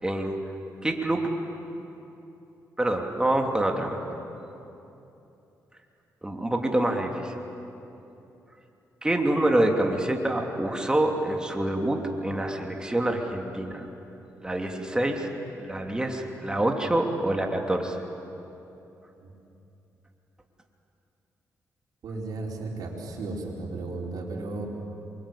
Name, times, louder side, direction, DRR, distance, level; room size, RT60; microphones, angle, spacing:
voice 1, 0.0-0.4 0.8-1.3 2.8-4.2 6.2-7.3 9.0-13.9 14.4-15.3 15.6-18.0, right 1 dB, 10° right, 2 dB, 3.0 m, -26 dB
voice 2, 22.0-24.7, right 3 dB, 75° right, -2 dB, 5.2 m, -34 dB
27.5 x 23.5 x 8.6 m, 2.9 s
cardioid pair, 80°, 7 cm